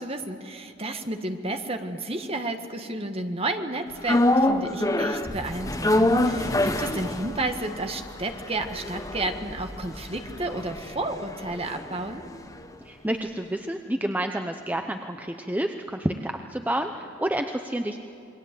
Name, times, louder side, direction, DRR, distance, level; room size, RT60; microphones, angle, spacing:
voice 1, 0.0-12.2, right 2 dB, 30° right, 6 dB, 1.6 m, -32 dB
sound 1, 4.1-12.4 12.6-12.7, left 1 dB, 20° left, 1.0 m, -26 dB
voice 2, 12.9-18.0, right 1 dB, 10° right, 5 dB, 0.8 m, -29 dB
28.0 x 22.0 x 7.7 m, 2.8 s
head